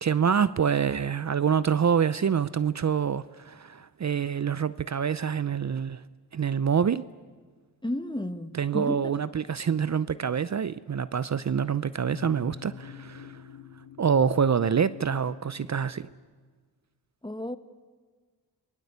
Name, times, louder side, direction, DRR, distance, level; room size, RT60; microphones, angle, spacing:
voice 1, 0.0-6.0 6.3-7.0 8.5-13.4 14.0-16.0, right 7 dB, 45° right, 0.7 m, -26 dB
voice 2, 7.8-9.1 17.2-17.6, left 1 dB, 10° left, 1.6 m, -32 dB
sound 1, 12.0-16.1, left 9 dB, 90° left, 2.0 m, -45 dB
26.5 x 22.0 x 8.2 m
cardioid pair, 55°, 40 cm